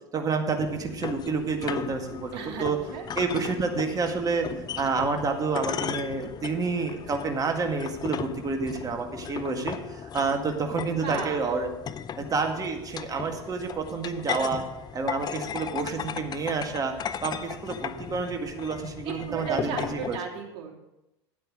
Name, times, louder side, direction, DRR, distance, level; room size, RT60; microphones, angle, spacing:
voice 1, 0.1-2.8 3.2-4.5 4.8-11.7 12.2-14.6 14.9-16.9 17.2-20.2, right 4 dB, 25° right, 4 dB, 1.9 m, -29 dB
sound 1, 0.6-20.2, left 8 dB, 30° left, 0.6 m, -36 dB
voice 2, 2.3-2.6 2.9-3.1 10.8-11.5 19.0-20.8, right 7 dB, 55° right, 0 dB, 3.2 m, -35 dB
12.5 x 9.4 x 4.9 m, 0.94 s
hypercardioid pair, 90°, 14 cm